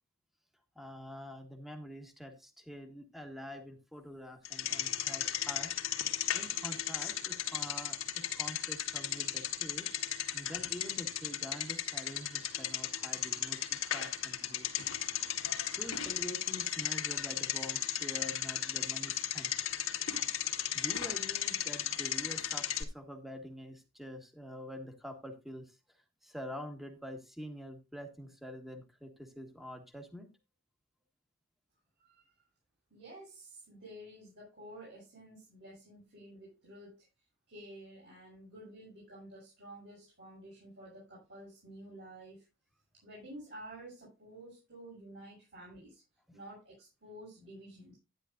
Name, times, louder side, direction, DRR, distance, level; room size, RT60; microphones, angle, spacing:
voice 1, 0.7-5.7 6.3-9.9 10.3-14.7 15.4-19.5 20.4-30.3 46.3-46.4, equal, ahead, 5 dB, 1.5 m, -46 dB
Bicycle, 4.4-22.8, left 10 dB, 70° left, 1.5 m, -35 dB
voice 2, 32.9-37.0 37.5-42.4 43.0-46.0 46.3-47.9, right 1 dB, 55° right, -5 dB, 7.1 m, -51 dB
12.0 x 9.9 x 2.5 m, 0.25 s
head